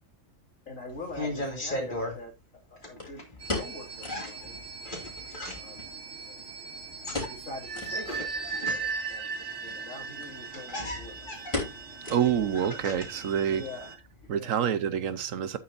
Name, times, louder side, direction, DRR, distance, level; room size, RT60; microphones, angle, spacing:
voice 1, 0.7-3.2 3.5-4.6 5.5-5.8 6.1-6.4 7.3-11.7 13.5-14.7, left 2 dB, 75° left, 2.8 m, -44 dB
sound 1, 0.9-2.2 2.8-3.7 4.0-5.9 6.8-9.1 10.0-10.1 10.3-13.3 13.6-14.3, left 1 dB, 35° left, 2.6 m, -37 dB
sound 2, 0.9-1.0 3.0-4.3 4.6-4.7 5.0-5.1 5.8-6.6 7.1-7.5 7.7-8.0 8.5-8.6 9.6-9.8 10.2-10.3 10.6-11.0 11.5-12.6 12.9-13.0 13.6-13.9 14.2-14.3, left 2 dB, 20° left, 3.3 m, -36 dB
sound 3, 3.4-13.9, right 4 dB, 55° right, 1.9 m, -39 dB
voice 2, 12.1-13.6 14.3-15.6, right 9 dB, 75° right, 1.2 m, -27 dB
11.0 x 8.4 x 2.6 m
omnidirectional pair, 1.4 m